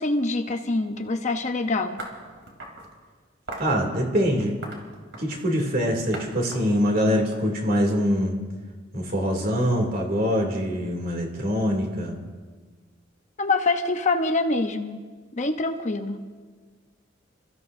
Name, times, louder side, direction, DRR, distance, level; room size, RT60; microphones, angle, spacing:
voice 1, 0.0-2.0 13.4-15.1 15.3-16.2, left 3 dB, 40° left, 6 dB, 0.9 m, -25 dB
sound 1, 2.0-2.9 3.5-3.8 4.4-5.5 6.1-6.3 6.5-7.9, right 2 dB, 70° right, 3.4 m, -39 dB
voice 2, 3.6-4.6 5.2-8.4 8.9-12.2, equal, 50° right, 1 dB, 2.8 m, -24 dB
29.5 x 15.0 x 2.7 m, 1.5 s
head